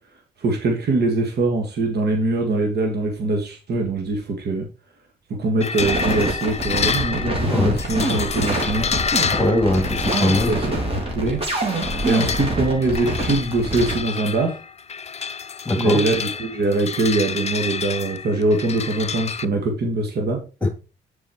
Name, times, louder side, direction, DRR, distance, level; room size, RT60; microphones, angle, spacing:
voice 1, 0.4-4.7 5.4-8.9 10.5-10.7 11.2-11.4 12.0-14.6 15.8-20.4, right 2 dB, 60° right, 2 dB, 1.9 m, -22 dB
sound 1, 5.6-19.4, left 6 dB, 35° left, 0.5 m, -29 dB
sound 2, 5.8-14.0, right 1 dB, 30° right, 3.2 m, -25 dB
voice 2, 7.4-7.8 9.3-10.5 15.6-16.0 20.6-20.7, left 1 dB, 5° left, 5 dB, 3.0 m, -21 dB
7.3 x 4.7 x 4.7 m, 0.33 s
cardioid pair, 75°, 18 cm